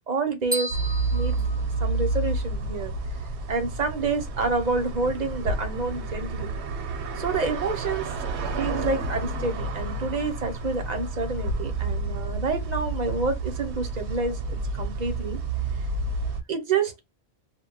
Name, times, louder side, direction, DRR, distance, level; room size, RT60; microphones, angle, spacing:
voice 1, 0.1-0.7 1.1-1.4 1.8-2.9 3.5-6.5 7.2-8.1 8.6-15.4 16.5-17.0, right 4 dB, 45° right, 0.7 m, -28 dB
sound 1, 0.5-2.4, right 1 dB, 15° right, 0.3 m, -34 dB
sound 2, 0.7-16.4, right 3 dB, 80° right, 0.9 m, -30 dB
2.2 x 2.1 x 3.7 m
omnidirectional pair, 1.1 m